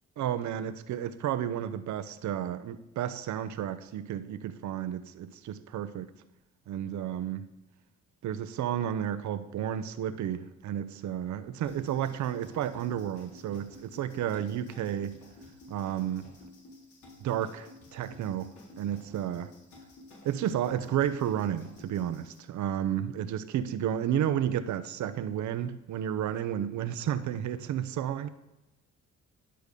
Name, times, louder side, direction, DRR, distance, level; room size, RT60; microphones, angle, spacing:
voice 1, 0.2-6.1 6.7-7.5 8.2-15.2 15.7-16.3 17.2-17.7 17.9-19.5 20.2-28.3, right 10 dB, 70° right, 0.7 m, -32 dB
sound 1, 11.6-22.4, left 2 dB, 70° left, 3.7 m, -52 dB
10.0 x 7.9 x 5.1 m
cardioid pair, 90°, 30 cm